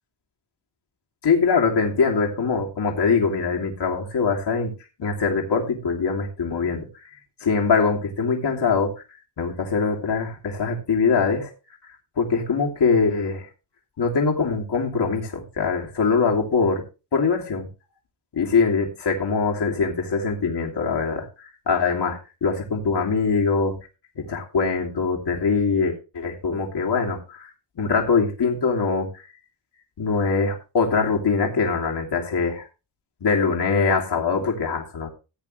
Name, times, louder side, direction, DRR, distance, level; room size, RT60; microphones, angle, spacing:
voice 1, 1.2-4.7 5.0-6.9 7.4-8.9 9.4-11.5 12.2-13.5 14.0-16.8 17.1-17.7 18.3-21.3 21.7-23.8 24.2-27.5 27.8-29.1 30.0-32.7 33.2-35.1, left 5 dB, 65° left, 0 dB, 2.8 m, -23 dB
16.0 x 8.5 x 3.2 m, 0.31 s
cardioid pair, 90°, 45 cm